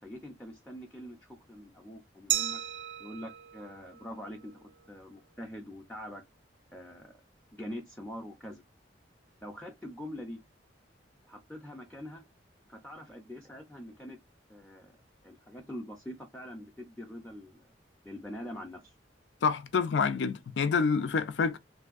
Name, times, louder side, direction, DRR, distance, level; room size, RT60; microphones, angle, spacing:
voice 1, 0.0-2.6 3.0-6.2 6.7-7.1 7.6-8.6 9.4-10.4 11.3-12.2 12.7-14.2 14.5-14.9 15.2-17.7 18.0-18.9, equal, 5° left, 0.5 m, -44 dB
Glass, 2.3-5.0, right 13 dB, 80° right, 0.3 m, -36 dB
voice 2, 19.4-21.6, left 5 dB, 75° left, 0.4 m, -27 dB
3.3 x 2.6 x 2.4 m
head